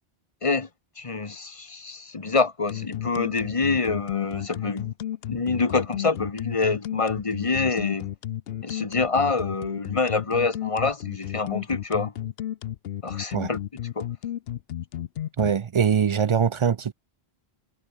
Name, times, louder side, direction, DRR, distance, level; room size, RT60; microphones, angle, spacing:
voice 1, 1.0-4.9 5.3-8.1 8.6-12.1 13.0-13.6 14.0-14.1, left 4 dB, 35° left, 1.1 m, -26 dB
sound 1, 2.7-15.5, left 11 dB, 75° left, 0.8 m, -32 dB
voice 2, 15.4-16.9, right 7 dB, 55° right, 0.3 m, -22 dB
omnidirectional pair, 1.0 m